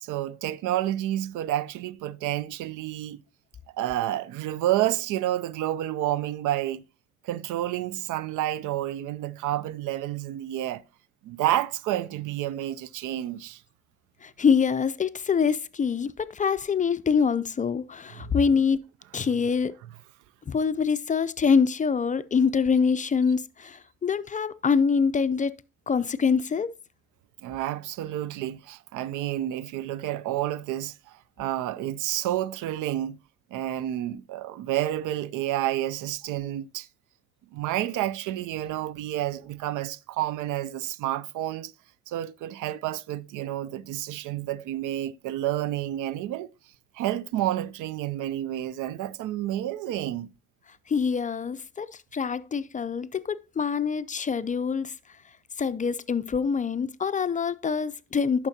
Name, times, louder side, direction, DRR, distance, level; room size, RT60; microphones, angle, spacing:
voice 1, 0.0-3.2 3.7-6.8 7.2-10.8 11.2-13.6 18.1-18.4 27.4-33.2 33.5-36.9 37.5-41.7 42.1-46.5 46.9-50.3, right 13 dB, 90° right, 0.5 m, -30 dB
voice 2, 14.2-18.8 19.1-19.7 20.5-25.5 25.9-26.7 50.9-54.9 55.6-58.5, left 6 dB, 25° left, 0.4 m, -25 dB
10.5 x 5.9 x 2.7 m
cardioid pair, 90°, 30 cm